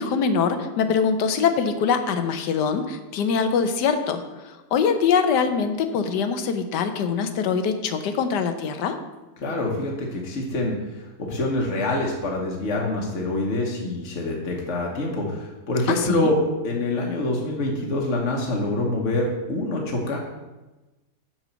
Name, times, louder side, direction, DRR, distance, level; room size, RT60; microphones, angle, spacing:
voice 1, 0.0-9.0 15.9-16.3, left 6 dB, 80° left, 8 dB, 1.4 m, -23 dB
voice 2, 9.4-16.4 16.6-20.2, left 2 dB, 45° left, -2 dB, 1.3 m, -26 dB
5.9 x 5.5 x 6.8 m, 1.1 s
omnidirectional pair, 1.8 m